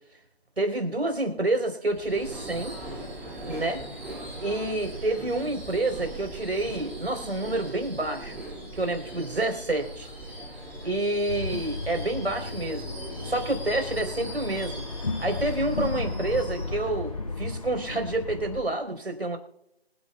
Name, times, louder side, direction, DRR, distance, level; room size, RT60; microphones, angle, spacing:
voice 1, 0.6-2.8 3.5-3.8 4.4-8.3 8.7-10.1 10.8-12.9 13.2-14.8 15.2-19.4, right 2 dB, 85° right, 6 dB, 3.9 m, -28 dB
Subway metro underground / Screech, 1.9-17.8, right 1 dB, 5° right, 2.4 m, -40 dB
sound 1, 11.3-18.6, left 3 dB, 35° left, 0.6 m, -34 dB
26.5 x 8.8 x 2.3 m, 0.86 s
figure-of-eight pair, 160°, 31 cm